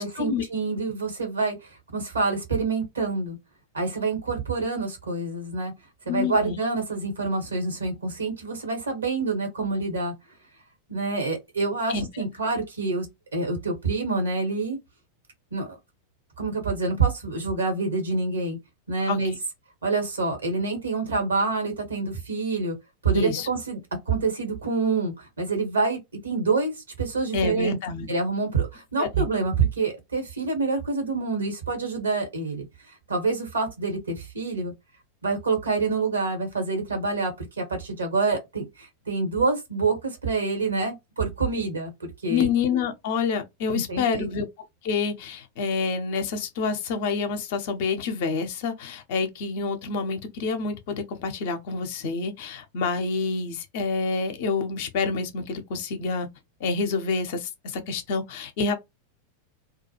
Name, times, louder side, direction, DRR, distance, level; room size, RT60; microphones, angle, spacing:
voice 1, 0.0-3.4 3.7-5.7 6.0-10.1 10.9-13.1 13.3-14.8 15.5-15.8 16.4-18.6 18.9-19.3 19.8-22.7 23.0-23.8 24.1-27.8 28.1-32.6 33.1-34.7 35.2-42.5 43.7-44.3, right 4 dB, 75° right, 1.2 m, -27 dB
voice 2, 6.1-6.5 11.9-12.0 19.1-19.2 23.1-23.5 27.3-28.1 29.0-29.2 42.3-44.5 44.8-56.3 56.6-58.7, left 5 dB, 50° left, 0.6 m, -27 dB
2.3 x 2.3 x 2.8 m
figure-of-eight pair, 90°, 0 cm